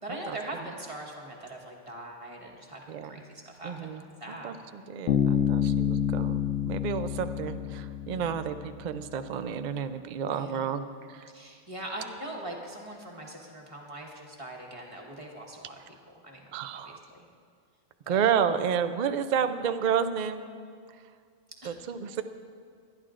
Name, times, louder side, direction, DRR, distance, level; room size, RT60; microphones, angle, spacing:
voice 1, 0.0-2.8 3.1-4.6 10.3-10.7 11.3-16.0 16.2-17.3 18.0-18.2 21.5-21.7 22.1-22.2, right 1 dB, 25° right, -1 dB, 1.4 m, -42 dB
voice 2, 3.6-4.0 4.4-11.3 16.5-17.0 18.1-20.4 21.6-22.2, right 7 dB, 60° right, 10 dB, 0.5 m, -30 dB
Bass guitar, 5.1-8.7, left 9 dB, 80° left, 1.0 m, -28 dB
23.0 x 10.5 x 2.5 m, 2.2 s
omnidirectional pair, 1.3 m